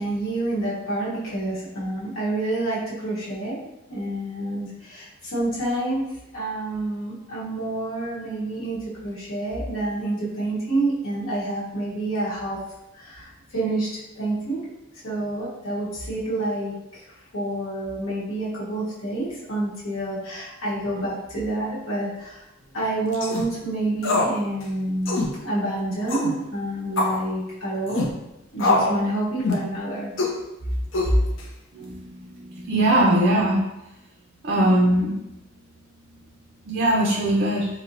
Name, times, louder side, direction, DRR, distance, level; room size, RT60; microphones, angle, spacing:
voice 1, 0.0-3.6 3.9-6.1 6.3-12.6 12.9-13.9 14.1-14.6 15.0-17.0 17.3-22.5 22.7-28.1 28.5-30.1 31.0-31.2, right 1 dB, 90° left, -8 dB, 1.1 m, -28 dB
sound 1, 23.1-23.5 24.0-24.4 24.6-24.7 25.1-25.3 26.1-26.3 27.0-27.2 27.9-28.1 28.6-29.0 29.4-29.7 30.2-30.4 30.9-31.4, left 2 dB, 65° left, 0.6 m, -23 dB
voice 2, 31.7-33.6 34.4-35.3 36.6-37.7, right 1 dB, 50° right, -4 dB, 0.5 m, -21 dB
4.1 x 2.1 x 2.5 m, 0.92 s
head